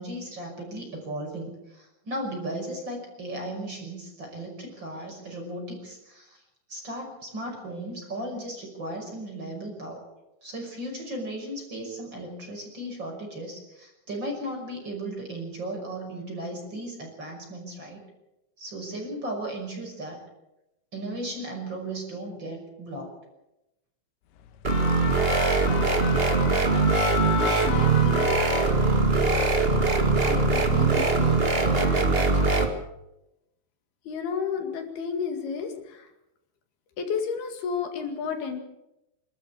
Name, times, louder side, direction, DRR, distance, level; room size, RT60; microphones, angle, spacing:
voice 1, 0.0-6.4 6.7-10.0 10.4-18.0 18.6-20.2 20.9-23.1, right 1 dB, 25° right, 1 dB, 6.1 m, -36 dB
sound 1, 24.4-29.2 29.6-29.8, left 11 dB, 85° left, 3.5 m, -34 dB
sound 2, 24.6-32.7, right 3 dB, 55° right, 0.6 m, -22 dB
voice 2, 27.4-28.3 30.2-32.3 34.1-36.1 37.0-38.6, left 6 dB, 65° left, 5 dB, 4.0 m, -32 dB
26.0 x 13.5 x 8.5 m, 0.91 s
omnidirectional pair, 5.1 m